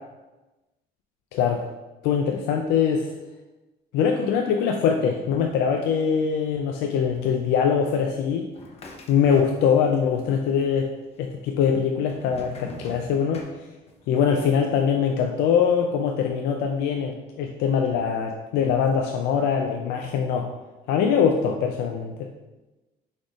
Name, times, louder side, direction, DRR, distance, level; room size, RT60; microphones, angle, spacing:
voice 1, 2.0-3.1 3.9-8.5 9.1-10.9 11.2-13.5 14.1-20.5 20.9-22.1, left 7 dB, 85° left, 2 dB, 0.4 m, -23 dB
sound 1, 8.5-10.0 10.2-11.0 11.6-14.1, left 2 dB, 35° left, 0.8 m, -43 dB
6.2 x 3.5 x 2.4 m, 1.1 s
cardioid pair, 110°, 17 cm